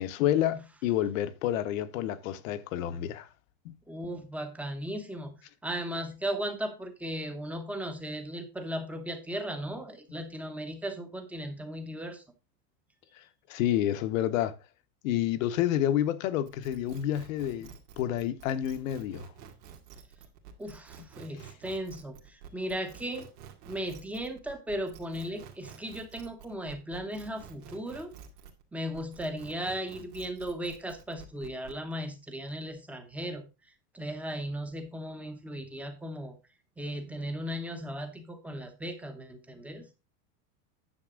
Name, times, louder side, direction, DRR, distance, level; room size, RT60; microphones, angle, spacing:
voice 1, 0.0-3.3 3.6-3.8 13.5-14.6 15.0-19.3, left 11 dB, 55° left, 1.0 m, -29 dB
voice 2, 3.9-12.2 20.6-23.3 23.7-28.1 28.7-33.4 33.9-36.3 36.8-39.8, equal, 5° right, 0.8 m, -36 dB
sound 1, 16.4-28.6 28.9-31.8, right 8 dB, 80° right, 2.3 m, -50 dB
9.9 x 7.2 x 3.6 m
supercardioid pair, 165°, 46 cm